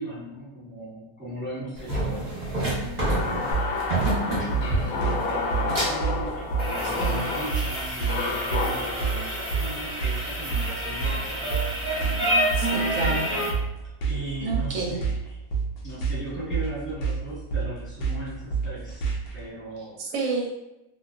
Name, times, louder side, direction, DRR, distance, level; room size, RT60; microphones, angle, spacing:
voice 1, 0.0-11.5 12.0-12.5 14.1-15.1 15.8-20.0, right 1 dB, 10° right, -10 dB, 1.0 m, -38 dB
sound 1, 1.8-13.5, right 1 dB, 35° right, 0.8 m, -29 dB
sound 2, 3.0-11.2, left 3 dB, 90° left, 1.1 m, -31 dB
sound 3, 3.5-19.4, right 5 dB, 70° left, 0.5 m, -29 dB
voice 2, 6.8-7.3 12.5-13.3 14.4-15.0 19.8-20.5, right 3 dB, 70° right, -2 dB, 0.9 m, -30 dB
2.4 x 2.2 x 2.3 m, 0.92 s
omnidirectional pair, 1.6 m